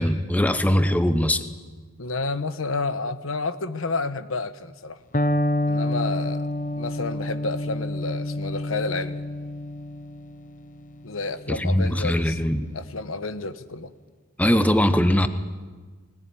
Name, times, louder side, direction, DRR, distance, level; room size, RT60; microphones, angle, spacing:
voice 1, 0.0-1.4 11.5-12.7 14.4-15.3, equal, 5° left, 10 dB, 0.9 m, -21 dB
voice 2, 2.0-5.0 5.7-6.5 6.7-9.2 11.0-12.4 12.7-13.9, left 3 dB, 80° left, 12 dB, 1.1 m, -30 dB
Electric guitar, 5.1-13.0, left 1 dB, 40° left, 1.0 m, -29 dB
20.5 x 19.0 x 9.7 m, 1.4 s
head